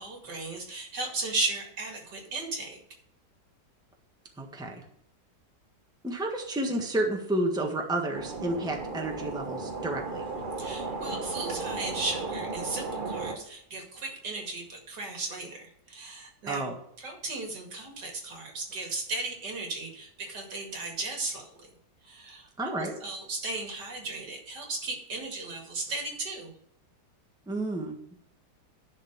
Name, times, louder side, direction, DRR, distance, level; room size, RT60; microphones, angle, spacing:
voice 1, 0.0-2.8 10.6-16.7 17.0-21.7 22.0-26.5, right 3 dB, 80° right, 2 dB, 2.8 m, -36 dB
voice 2, 4.4-4.7 6.0-10.2 16.5-16.7 22.6-22.9 27.5-28.0, right 1 dB, 5° right, 1 dB, 1.3 m, -30 dB
sound 1, 8.1-13.4, right 3 dB, 35° right, 1.0 m, -35 dB
10.5 x 4.5 x 7.2 m, 0.73 s
omnidirectional pair, 1.8 m